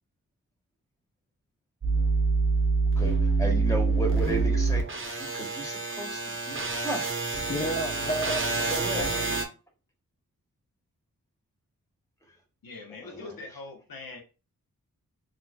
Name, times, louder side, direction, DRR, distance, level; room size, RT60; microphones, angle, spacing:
sound 1, 1.8-9.5, right 3 dB, 35° right, 0.8 m, -26 dB
voice 1, 3.0-4.8 5.2-7.5 8.5-9.2 13.0-13.4, right 2 dB, 10° left, 0 dB, 1.5 m, -35 dB
voice 2, 7.5-9.2, right 1 dB, 25° left, 2 dB, 0.5 m, -32 dB
voice 3, 12.6-14.2, left 3 dB, 90° left, 2 dB, 0.9 m, -42 dB
4.2 x 3.2 x 2.2 m, 0.32 s
cardioid pair, 55°, 34 cm